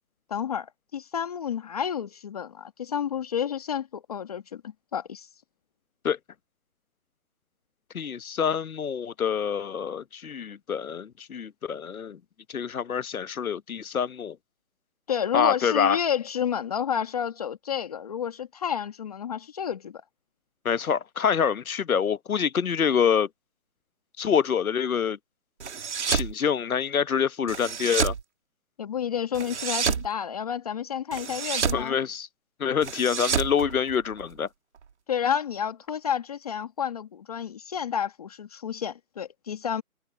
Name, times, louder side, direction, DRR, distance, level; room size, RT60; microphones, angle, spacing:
voice 1, 0.3-5.3 15.1-20.0 28.8-32.0 35.1-39.8, left 8 dB, 25° left, 1.5 m, -30 dB
voice 2, 7.9-12.2 12.5-14.4 15.3-16.0 20.6-23.3 24.2-25.2 26.1-28.1 31.7-32.3 32.6-34.5, left 7 dB, 70° left, 1.1 m, -26 dB
sound 1, 25.6-26.3 27.5-28.2 29.3-30.1 31.1-31.8 32.8-34.3, right 6 dB, 50° right, 2.3 m, -29 dB
hypercardioid pair, 170°, 44 cm